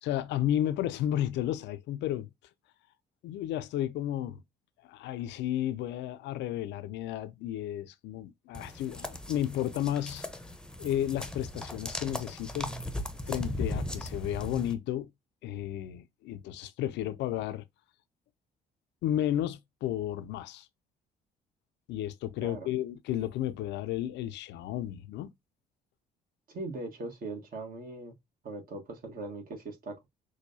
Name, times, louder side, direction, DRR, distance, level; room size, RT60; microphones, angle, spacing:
voice 1, 0.0-2.3 3.2-4.4 4.8-10.2 10.8-12.7 13.3-15.1 15.4-17.6 19.0-20.7 21.9-25.3, left 12 dB, 65° left, 0.5 m, -33 dB
sound 1, 8.5-14.7, left 1 dB, 5° left, 0.8 m, -38 dB
voice 2, 26.5-28.1 28.4-30.1, right 2 dB, 45° right, 1.5 m, -40 dB
6.2 x 2.3 x 2.7 m
hypercardioid pair, 55°, 20 cm